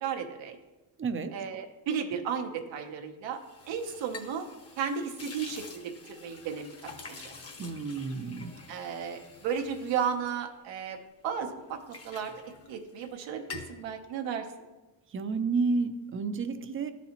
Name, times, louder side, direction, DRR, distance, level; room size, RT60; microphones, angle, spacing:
voice 1, 0.0-0.6 1.3-3.4 3.7-4.5 4.8-7.3 8.7-11.0 11.2-12.3 12.7-14.4, right 7 dB, 80° right, 3 dB, 0.9 m, -34 dB
voice 2, 1.0-1.3 7.6-8.5 15.1-16.9, right 4 dB, 30° right, 9 dB, 0.5 m, -30 dB
sound 1, 3.3-11.1 11.5-13.1 13.4-13.8, left 4 dB, 35° left, 1.1 m, -48 dB
12.0 x 4.1 x 2.9 m, 1.1 s
cardioid pair, 105°, 44 cm